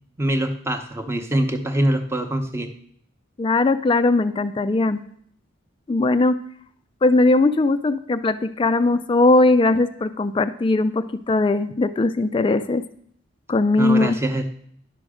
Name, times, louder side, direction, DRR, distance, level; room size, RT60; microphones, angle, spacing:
voice 1, 0.2-2.7 13.8-14.5, right 1 dB, 15° right, 6 dB, 0.8 m, -24 dB
voice 2, 3.4-5.0 5.9-6.3 7.0-12.8 13.5-14.2, left 2 dB, 25° left, 11 dB, 0.3 m, -19 dB
10.5 x 6.2 x 4.9 m, 0.64 s
head